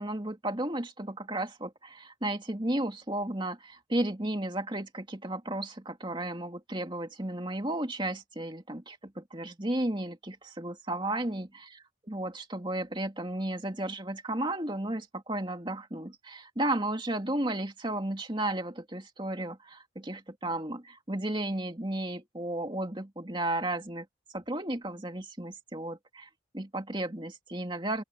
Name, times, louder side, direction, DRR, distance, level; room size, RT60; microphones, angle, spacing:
voice 1, 0.0-11.5 12.1-24.1 24.3-26.3 26.5-28.0, right 1 dB, 25° right, 2.4 m, -33 dB
open air
head